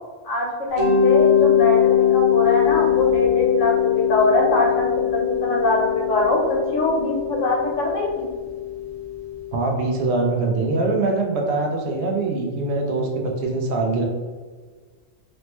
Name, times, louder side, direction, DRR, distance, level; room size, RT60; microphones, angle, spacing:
voice 1, 0.2-8.3, left 2 dB, 75° left, -2 dB, 1.1 m, -22 dB
Mallet percussion, 0.8-9.5, left 9 dB, 35° right, 0.7 m, -21 dB
voice 2, 9.5-14.0, right 3 dB, 65° right, 0 dB, 0.8 m, -23 dB
3.2 x 2.0 x 2.9 m, 1.5 s
omnidirectional pair, 1.3 m